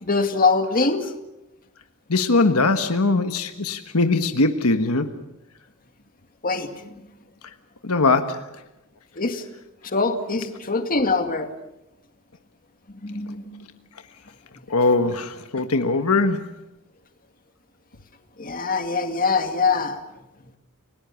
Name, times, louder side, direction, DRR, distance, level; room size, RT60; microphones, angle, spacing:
voice 1, 0.0-1.1 6.4-7.0 9.2-9.4 9.8-11.5 13.0-13.7 18.4-20.0, left 4 dB, 40° left, 6 dB, 2.1 m, -23 dB
voice 2, 2.1-5.1 7.8-8.4 14.7-16.4, left 3 dB, 85° left, 7 dB, 1.4 m, -21 dB
30.0 x 19.0 x 7.2 m, 0.93 s
head